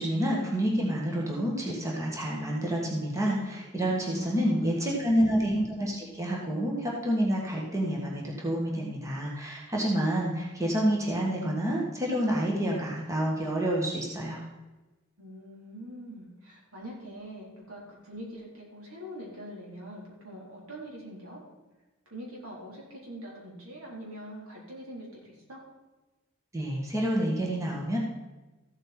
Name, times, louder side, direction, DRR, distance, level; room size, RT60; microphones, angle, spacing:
voice 1, 0.0-14.4 26.5-28.0, equal, 15° right, -3 dB, 1.7 m, -28 dB
voice 2, 4.1-5.2 15.2-21.4 22.1-25.6, equal, 70° right, -3 dB, 4.0 m, -44 dB
14.5 x 8.0 x 4.4 m, 1.1 s
head